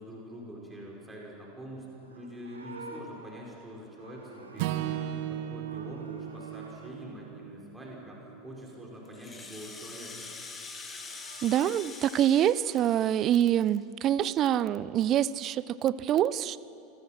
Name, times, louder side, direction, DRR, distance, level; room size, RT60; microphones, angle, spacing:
voice 1, 0.0-10.3, equal, 10° right, -3 dB, 4.9 m, -45 dB
Livestock farm animals working animals, 1.9-5.3 5.6-6.9 10.7-11.9, right 2 dB, 80° right, 2.4 m, -49 dB
Acoustic guitar / Strum, 4.6-8.9, right 12 dB, 50° right, 1.0 m, -36 dB
Rattle (instrument), 9.1-13.8, left 4 dB, 15° left, 2.5 m, -45 dB
voice 2, 11.4-16.6, right 11 dB, 35° right, 18 dB, 0.6 m, -25 dB
26.5 x 21.0 x 5.9 m, 2.8 s
figure-of-eight pair, 80°, 0 cm